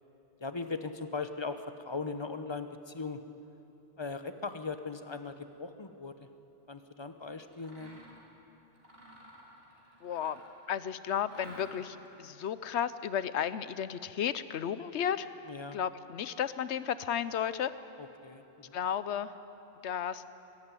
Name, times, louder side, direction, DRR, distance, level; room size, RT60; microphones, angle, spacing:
voice 1, 0.4-3.2 4.0-6.3 6.7-8.0 15.4-15.8 18.0-18.8, left 4 dB, 25° left, 9 dB, 0.9 m, -39 dB
Mechanisms, 7.5-8.2 8.7-10.6 11.2-12.1, right 1 dB, 60° right, 3.7 m, -52 dB
voice 2, 10.0-10.4 10.7-15.3 15.7-17.7 18.7-19.3 19.8-20.2, left 9 dB, 85° left, 15 dB, 1.0 m, -33 dB
23.0 x 13.5 x 9.7 m, 3.0 s
omnidirectional pair, 1.1 m